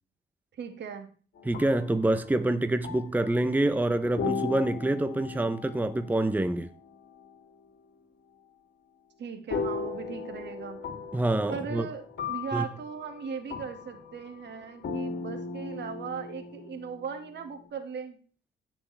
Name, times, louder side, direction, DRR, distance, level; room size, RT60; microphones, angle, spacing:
voice 1, 0.5-1.1 9.2-10.8 11.5-18.2, right 6 dB, 60° right, 2.1 m, -38 dB
sound 1, 1.4-3.8 4.2-7.3 9.5-17.7, left 5 dB, 60° left, 3.1 m, -37 dB
voice 2, 1.4-6.7 11.1-11.9 12.5-12.6, right 1 dB, 10° right, 0.8 m, -26 dB
16.5 x 6.2 x 3.4 m
cardioid pair, 90°, 20 cm